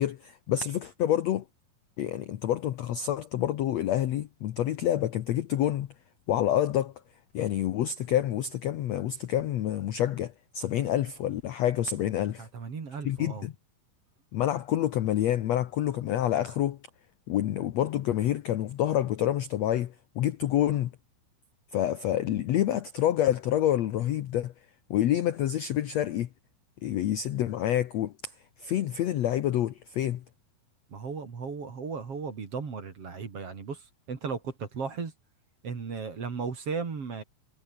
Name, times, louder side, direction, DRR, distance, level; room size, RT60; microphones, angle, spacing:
voice 1, 0.0-1.4 2.0-5.9 6.3-6.9 7.3-12.5 13.0-13.5 14.3-16.8 17.3-20.9 21.7-24.5 24.9-26.3 26.8-28.1 28.6-30.2, left 11 dB, 75° left, 1.6 m, -27 dB
voice 2, 12.4-13.5 30.9-35.1 35.6-37.2, right 5 dB, 40° right, 3.7 m, -36 dB
omnidirectional pair, 4.4 m